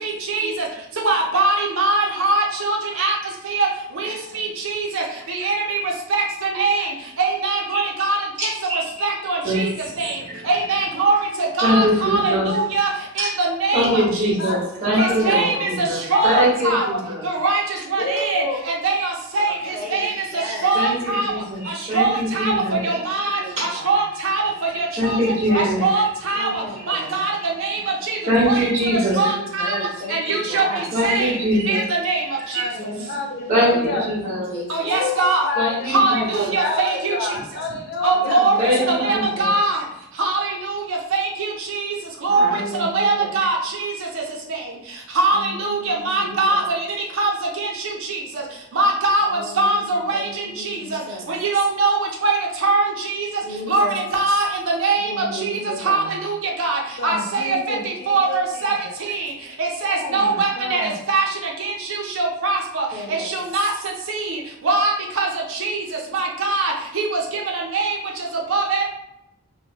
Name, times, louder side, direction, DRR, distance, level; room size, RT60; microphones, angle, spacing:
voice 1, 0.0-0.5 1.0-3.2 3.5-3.7 4.0-5.0 5.3-5.8 6.1-6.2 6.6-6.9 7.2-8.2 9.0-9.7 10.0-10.2 10.5-11.2 11.6-12.9 13.2-14.0 15.0-15.7 16.1-16.9 17.2-17.6 17.9-18.4 18.8-19.5 19.9-20.1 20.6-21.3 21.9-22.5 22.8-23.4 23.9-24.4 24.8-25.2 25.8-26.5 26.9-27.3 27.6-27.8 28.1-28.2 28.4-28.6 29.2-29.8 30.1-30.6 31.0-31.3 31.7-32.2 34.7-35.5 35.9-37.1 38.0-38.5 39.0-39.8 40.2-40.8 41.1-41.3 41.7-41.9 42.2-42.5 42.9-43.9 45.2-46.9 47.2-47.3 47.6-47.7 48.1-48.2 48.8-49.2 49.6-50.2 50.7-51.0 51.4-52.9 53.2-53.3 53.7-53.9 54.1-54.5 54.8-55.1 55.5-55.6 55.8-57.6 58.1-58.7 59.1-59.2 59.6-60.8 61.1-61.3 61.6-61.7 62.2-62.9 63.3-63.7 64.1-64.4 64.6-65.3 65.6-65.8 66.1-67.1 67.7-67.9 68.5-68.9, right 3 dB, 65° right, 0 dB, 0.5 m, -21 dB
voice 2, 8.4-8.8 9.4-9.6 10.0-10.1 11.6-12.5 13.2-13.3 13.7-17.2 20.7-22.9 23.3-23.6 24.7-25.8 28.3-29.2 30.9-31.8 32.5-32.6 33.5-34.4 35.6-36.5 38.6-39.5 42.3-42.4, equal, 35° right, -6 dB, 1.2 m, -22 dB
voice 3, 14.9-15.7 16.1-16.4 16.7-17.0 18.0-18.6 32.5-34.1 34.8-36.3 36.6-38.4 57.0-58.7 59.8-61.0, left 3 dB, 50° left, 0 dB, 0.4 m, -28 dB
voice 4, 19.4-21.3 22.6-23.9 25.4-25.8 26.3-27.2 29.0-30.9 33.5-34.9 38.1-39.2 42.3-43.4 45.3-46.7 49.2-51.3 53.4-54.0 55.0-56.1 62.9-63.3, equal, 25° left, -6 dB, 1.0 m, -34 dB
2.9 x 2.1 x 2.9 m, 0.87 s
head